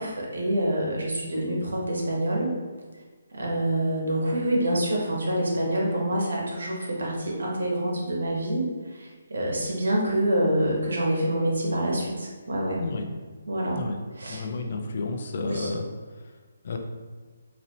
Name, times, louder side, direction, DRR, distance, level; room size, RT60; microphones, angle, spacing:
voice 1, 0.0-2.5 3.3-12.8 13.5-13.8 14.2-14.4 15.4-15.7, right 1 dB, 70° right, -2 dB, 1.1 m, -26 dB
voice 2, 14.3-15.9 16.6-16.8, left 3 dB, 55° left, 4 dB, 0.5 m, -31 dB
4.1 x 2.6 x 2.9 m, 1.5 s
figure-of-eight pair, 145°, 0 cm